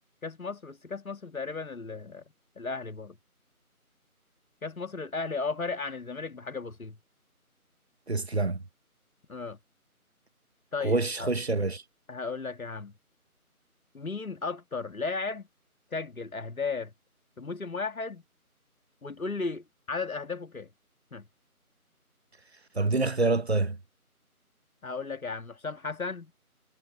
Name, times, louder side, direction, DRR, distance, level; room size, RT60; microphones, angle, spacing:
voice 1, 0.2-2.2 2.5-3.2 4.6-7.0 9.3-9.6 10.7-11.3 12.1-12.9 13.9-15.5 15.9-16.9 17.4-18.2 19.0-20.7 21.1-21.3 24.8-26.3, left 4 dB, 65° left, 1.7 m, -35 dB
voice 2, 8.1-8.6 10.8-11.8 22.8-23.8, right 3 dB, 45° right, 1.4 m, -26 dB
figure-of-eight pair, 170°, 44 cm